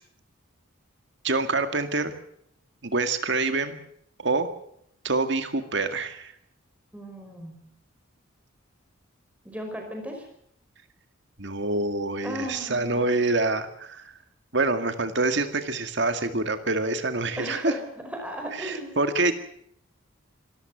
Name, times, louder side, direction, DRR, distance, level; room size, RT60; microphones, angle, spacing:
voice 1, 1.2-2.1 2.8-3.8 4.2-4.5 5.0-6.3 11.4-14.1 14.5-17.7 18.6-19.4, right 3 dB, 55° right, 8 dB, 2.1 m, -26 dB
voice 2, 6.9-7.7 9.4-10.3 12.2-13.1 17.4-19.0, equal, 5° right, 3 dB, 5.1 m, -36 dB
26.0 x 14.0 x 7.9 m, 0.70 s
head